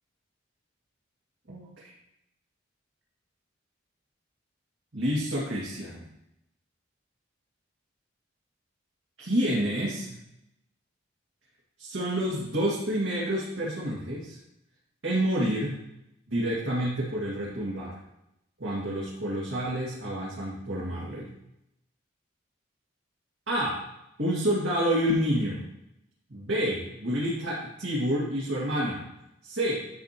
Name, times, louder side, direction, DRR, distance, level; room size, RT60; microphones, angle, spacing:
voice 1, 1.5-1.9 4.9-6.1 9.2-10.2 11.8-14.4 15.0-15.8 16.3-18.0 18.6-21.3 23.5-23.8 24.2-25.6 26.3-29.0 29.4-29.8, equal, 75° right, -7 dB, 2.1 m, -28 dB
10.0 x 6.6 x 2.9 m, 0.84 s
head